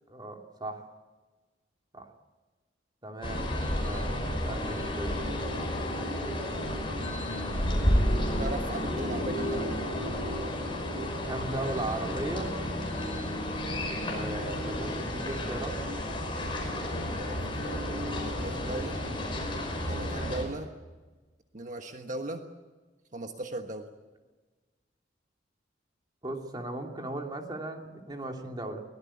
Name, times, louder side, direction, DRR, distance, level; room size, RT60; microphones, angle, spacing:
voice 1, 0.1-0.9 1.9-2.1 3.0-3.5 3.8-4.1 4.4-5.1 11.2-12.5 14.0-15.8 18.5-18.8 20.1-20.3 26.2-28.8, right 2 dB, 25° right, 2 dB, 2.8 m, -37 dB
sound 1, 3.2-20.4, left 1 dB, 30° left, 5.5 m, -31 dB
voice 2, 8.4-9.7 13.2-13.4 17.1-17.8 18.2-19.0 19.9-20.7 21.5-22.4 23.1-23.9, right 2 dB, 45° right, 5 dB, 1.4 m, -38 dB
23.0 x 18.0 x 8.6 m, 1.3 s
head